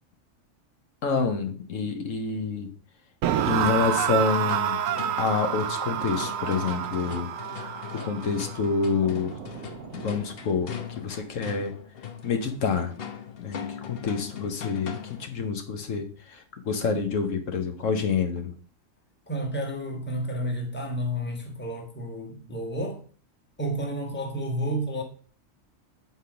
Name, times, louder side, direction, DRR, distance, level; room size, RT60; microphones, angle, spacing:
voice 1, 1.0-2.7 3.5-4.8 5.2-7.3 7.5-9.4 9.9-11.7 12.2-12.9 13.4-18.5, left 5 dB, 75° left, 1.4 m, -28 dB
sound 1, 3.2-10.3, right 10 dB, 90° right, 1.0 m, -29 dB
sound 2, 4.1-15.3, left 8 dB, 55° left, 0.9 m, -40 dB
voice 2, 19.3-23.0 23.6-25.0, equal, 10° left, 1.2 m, -31 dB
7.9 x 4.1 x 5.1 m
omnidirectional pair, 1.3 m